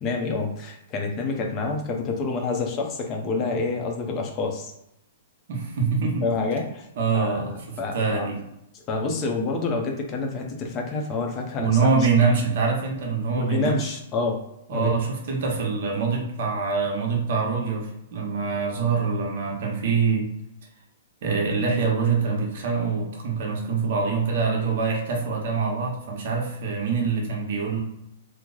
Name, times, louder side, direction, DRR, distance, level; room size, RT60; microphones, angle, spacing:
voice 1, 0.0-4.7 6.2-6.9 7.1-8.3 8.9-12.0 13.3-14.4 14.7-14.9, left 3 dB, 25° left, 1 dB, 0.6 m, -28 dB
voice 2, 5.5-6.3 7.0-8.4 11.6-13.8 14.7-20.3 21.2-27.8, right 5 dB, 55° right, 0 dB, 1.0 m, -24 dB
3.0 x 2.0 x 3.8 m, 0.82 s
hypercardioid pair, 165°, 0 cm